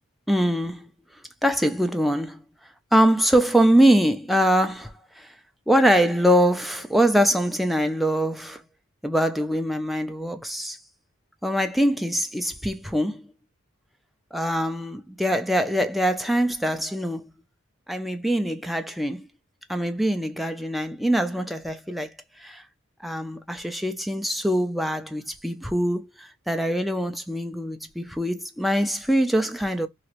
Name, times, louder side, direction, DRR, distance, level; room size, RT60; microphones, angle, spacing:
voice 1, 0.3-0.9 1.4-2.4 2.9-5.3 5.7-8.6 9.0-10.8 11.4-13.3 14.3-17.3 17.9-19.3 19.7-22.6 23.0-29.9, equal, ahead, 0.3 m, -23 dB
2.9 x 2.5 x 3.0 m
head